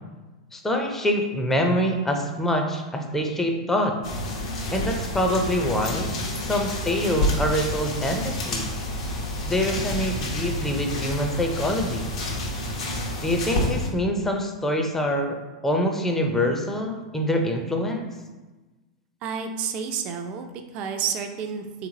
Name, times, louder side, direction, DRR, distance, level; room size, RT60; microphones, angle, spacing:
voice 1, 0.5-3.9 4.7-6.1 6.4-8.7 9.4-12.1 13.2-15.4 15.6-18.1, equal, 10° left, 3 dB, 0.5 m, -25 dB
sound 1, 4.0-13.9, left 1 dB, 65° left, 0.9 m, -29 dB
voice 2, 19.2-21.9, right 7 dB, 45° right, 6 dB, 0.4 m, -30 dB
3.5 x 2.9 x 2.8 m, 1.2 s
hypercardioid pair, 95°, 3 cm